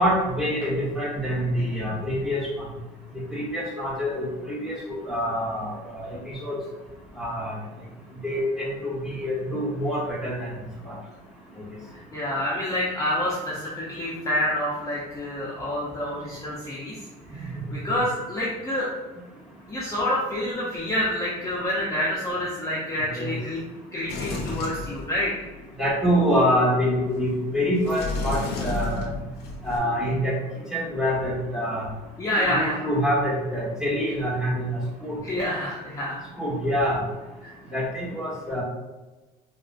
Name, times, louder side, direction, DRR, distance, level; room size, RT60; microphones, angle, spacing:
voice 1, 0.0-2.5 3.3-6.5 7.2-7.6 8.2-10.5 10.8-11.0 17.7-17.9 23.1-23.3 25.8-29.1 29.6-30.4 30.7-31.9 32.4-35.2 36.4-37.0 37.7-38.6, equal, 5° right, -7 dB, 1.1 m, -26 dB
voice 2, 11.9-17.0 17.3-18.9 19.7-23.6 23.9-25.3 32.2-32.8 35.2-36.2 37.4-37.5, left 1 dB, 20° left, -7 dB, 0.6 m, -28 dB
Sliding door, 24.1-25.6 27.8-29.8, left 2 dB, 75° left, 0.6 m, -31 dB
3.6 x 2.1 x 2.5 m, 1.1 s
cardioid pair, 110°, 17 cm